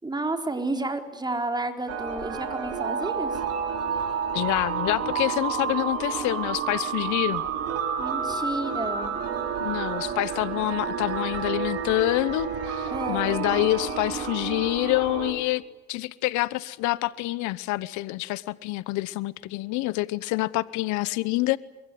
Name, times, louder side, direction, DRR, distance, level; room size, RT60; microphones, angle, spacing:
voice 1, 0.0-3.4 8.0-9.1 12.9-13.2, right 2 dB, 15° right, 4.0 m, -31 dB
sound 1, 1.9-15.3, right 6 dB, 50° right, 6.3 m, -30 dB
voice 2, 4.3-7.4 9.6-15.6 15.9-21.6, left 18 dB, 65° left, 1.0 m, -27 dB
25.0 x 22.5 x 9.9 m
supercardioid pair, 85°, 31 cm